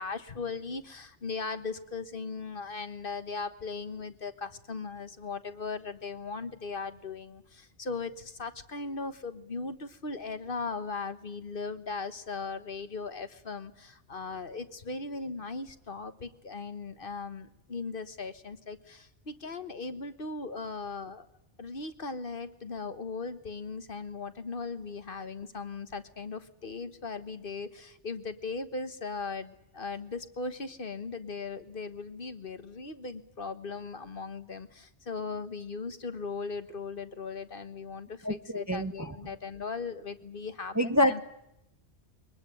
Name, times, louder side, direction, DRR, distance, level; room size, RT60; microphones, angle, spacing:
voice 1, 0.0-21.3 21.6-41.2, left 4 dB, 50° left, 10 dB, 1.4 m, -38 dB
voice 2, 38.2-39.2 40.7-41.2, left 1 dB, 15° right, 9 dB, 0.8 m, -27 dB
22.5 x 19.5 x 9.1 m, 0.83 s
omnidirectional pair, 1.2 m